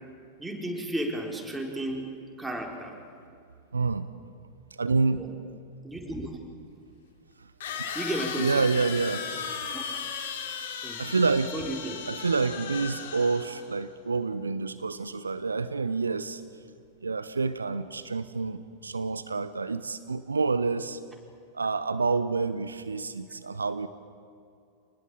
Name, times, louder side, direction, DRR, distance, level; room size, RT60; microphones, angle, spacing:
voice 1, 0.4-2.1 2.4-3.0 5.2-5.3 5.8-6.3 7.9-8.6 9.7-9.8 10.8-11.1 11.5-12.0, right 1 dB, 5° right, 1 dB, 4.4 m, -33 dB
voice 2, 3.7-4.1 4.8-5.2 8.4-9.3 11.0-11.5 12.1-16.4 17.0-21.0 21.5-23.9, right 4 dB, 75° right, 13 dB, 0.9 m, -28 dB
sound 1, 6.0-6.1 7.6-13.7, left 6 dB, 60° left, 3.2 m, -36 dB
26.0 x 19.5 x 8.9 m, 2.4 s
figure-of-eight pair, 90°, 0 cm